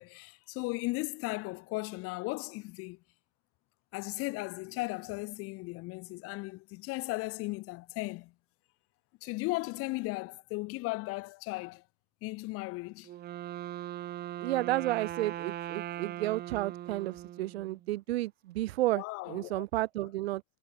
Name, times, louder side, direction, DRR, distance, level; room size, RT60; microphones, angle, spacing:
voice 1, 0.0-3.0 3.9-8.3 9.2-11.8 12.2-13.1 18.9-19.6, left 23 dB, 35° left, 7.8 m, -36 dB
Wind instrument woodwind instrument, 13.0-17.9, right 12 dB, 25° right, 4.0 m, -40 dB
voice 2, 14.4-20.4, right 16 dB, 55° right, 3.7 m, -32 dB
hypercardioid pair, 125°, 37 cm